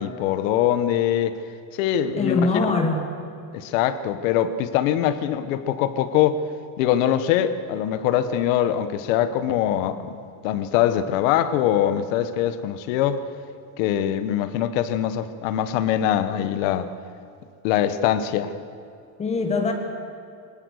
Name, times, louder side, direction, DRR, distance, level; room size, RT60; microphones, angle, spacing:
voice 1, 0.0-1.4 1.7-2.7 3.5-6.4 6.8-10.2 10.4-13.2 13.8-16.9 17.6-18.5, left 10 dB, 65° left, 10 dB, 1.4 m, -23 dB
voice 2, 2.2-3.0 19.2-19.7, left 3 dB, 15° left, 4 dB, 1.7 m, -22 dB
24.5 x 19.0 x 6.6 m, 2.5 s
cardioid pair, 180°, 42 cm